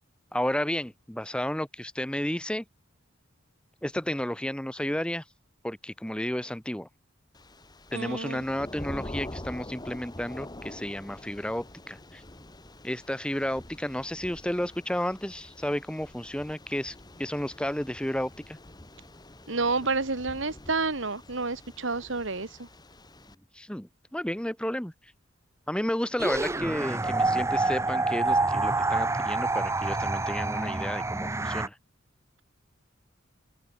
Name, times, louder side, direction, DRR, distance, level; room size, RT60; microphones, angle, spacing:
voice 1, 0.3-2.6 3.8-5.2 5.6-6.9 7.9-12.2 12.8-18.6 23.5-24.9 25.7-31.8, equal, 5° left, 1.1 m, -32 dB
Thunder / Rain, 7.3-23.4, left 1 dB, 20° left, 1.7 m, -45 dB
voice 2, 7.9-8.4 19.5-22.7, right 3 dB, 70° right, 2.0 m, -29 dB
sound 1, 26.2-31.7, right 3 dB, 15° right, 0.7 m, -27 dB
head